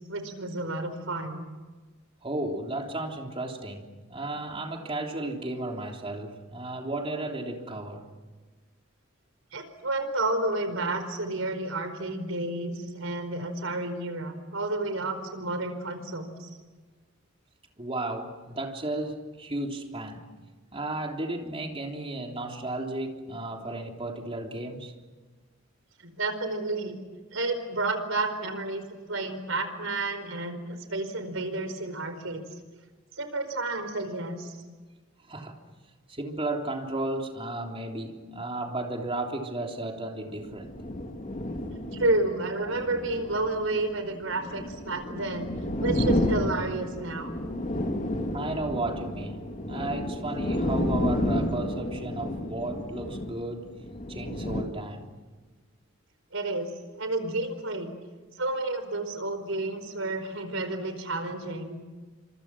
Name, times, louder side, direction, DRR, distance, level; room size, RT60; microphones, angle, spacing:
voice 1, 0.1-1.5 9.5-16.5 26.0-27.0 27.3-32.5 33.1-34.6 41.9-45.5 45.8-47.3 56.3-56.7 57.0-57.9 58.4-61.8, right 2 dB, 85° right, 4.8 m, -31 dB
voice 2, 2.2-8.1 17.8-20.3 20.7-24.9 35.3-35.6 36.1-40.7 48.3-55.1, right 2 dB, 30° right, 3.5 m, -34 dB
sound 1, 40.4-54.6, left 1 dB, 40° left, 2.6 m, -31 dB
29.5 x 26.5 x 6.2 m
head